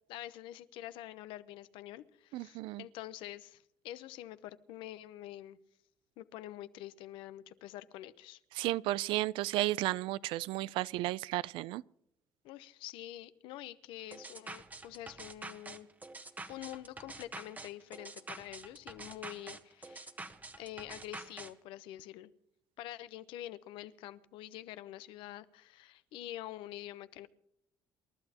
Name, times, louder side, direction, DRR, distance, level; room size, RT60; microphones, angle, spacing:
voice 1, 0.1-5.6 6.2-8.4 12.4-15.9 16.5-20.1 20.6-22.3 22.8-27.3, left 14 dB, 80° left, 0.8 m, -46 dB
voice 2, 2.3-2.8 8.5-11.8, right 16 dB, 80° right, 0.4 m, -33 dB
sound 1, 14.1-21.5, right 2 dB, 20° right, 1.2 m, -47 dB
28.0 x 12.0 x 2.9 m
cardioid pair, 90°, 8 cm